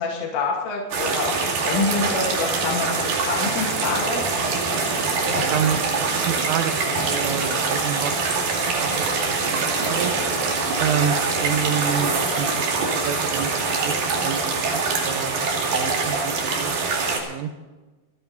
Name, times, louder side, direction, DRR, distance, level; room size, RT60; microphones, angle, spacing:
voice 1, 0.0-4.2, left 4 dB, 85° left, -2 dB, 4.8 m, -26 dB
sound 1, 0.9-17.2, right 4 dB, 55° right, 3.8 m, -24 dB
voice 2, 5.3-9.1 9.4-10.1 10.8-14.4 14.7-16.9 17.2-17.5, right 8 dB, 90° right, 8 dB, 3.7 m, -29 dB
28.5 x 9.6 x 4.1 m, 1.2 s
omnidirectional pair, 5.5 m